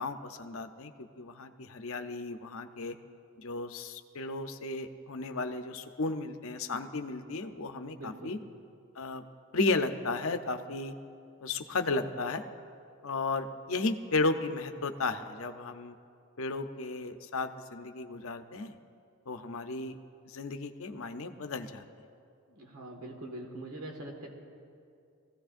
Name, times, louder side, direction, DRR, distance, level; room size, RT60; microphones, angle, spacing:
voice 1, 0.0-2.9 3.4-8.4 9.0-9.2 9.5-10.9 11.4-12.4 13.0-15.9 16.4-18.8 19.3-20.0 20.3-21.8, left 3 dB, 70° left, 7 dB, 0.7 m, -34 dB
voice 2, 8.0-8.4 22.5-24.3, right 1 dB, 85° right, 0 dB, 1.7 m, -43 dB
21.0 x 15.5 x 2.6 m, 2.4 s
head